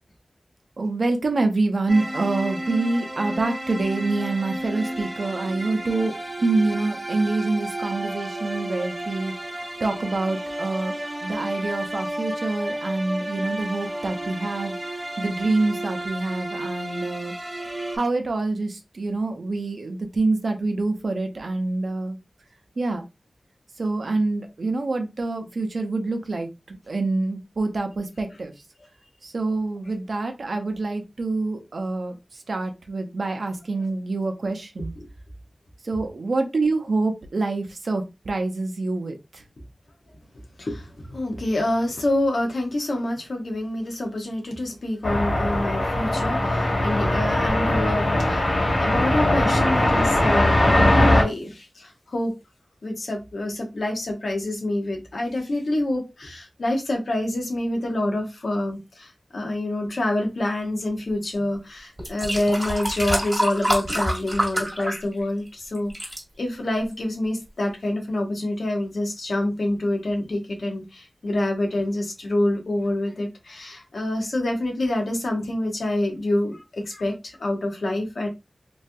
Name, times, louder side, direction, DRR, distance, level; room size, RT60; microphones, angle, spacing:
voice 1, 0.8-6.1 6.4-9.3 9.8-17.3 17.9-22.2 22.8-23.0 23.8-28.5 29.2-34.9 35.8-39.4, right 3 dB, 80° right, 5 dB, 0.6 m, -26 dB
sound 1, 1.9-18.0, right 1 dB, 45° right, 0.9 m, -32 dB
voice 2, 40.6-48.5 48.8-52.3 52.8-78.3, left 1 dB, 85° left, 1 dB, 0.9 m, -27 dB
sound 2, 45.0-51.2, left 1 dB, 70° left, 1.6 m, -20 dB
sound 3, 61.4-61.5 62.0-65.5 65.7-66.2 66.9-67.0, equal, 15° right, 1.4 m, -26 dB
3.1 x 2.3 x 2.6 m, 0.24 s
cardioid pair, 45°, 0 cm